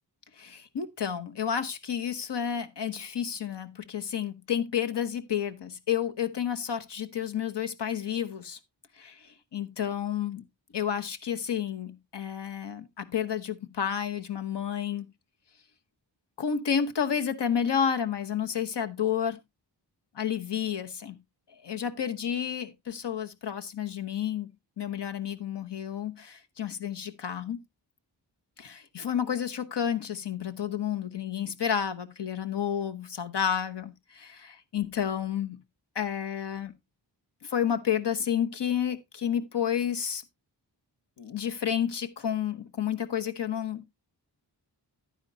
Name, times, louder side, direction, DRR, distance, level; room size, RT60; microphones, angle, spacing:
voice 1, 0.4-8.6 9.0-10.5 10.7-15.1 16.4-19.4 20.1-21.2 21.6-27.6 28.6-35.6 35.9-36.8 37.4-40.2 41.2-43.9, left 8 dB, 70° left, 1.0 m, -31 dB
10.5 x 9.5 x 2.7 m
wide cardioid pair, 60°, 43 cm